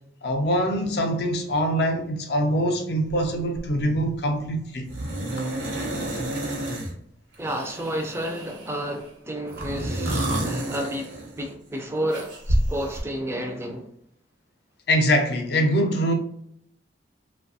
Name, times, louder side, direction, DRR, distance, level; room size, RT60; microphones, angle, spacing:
voice 1, 0.2-4.9 14.9-16.1, equal, 60° left, 0.5 m, -23 dB
sound 1, 3.1-3.3 3.6-4.0 4.9-6.9 7.4-8.8 9.5-11.5 12.1-13.0, right 1 dB, 80° right, 0.9 m, -29 dB
voice 2, 7.4-13.9, equal, 15° right, 0.4 m, -31 dB
2.6 x 2.3 x 2.6 m
head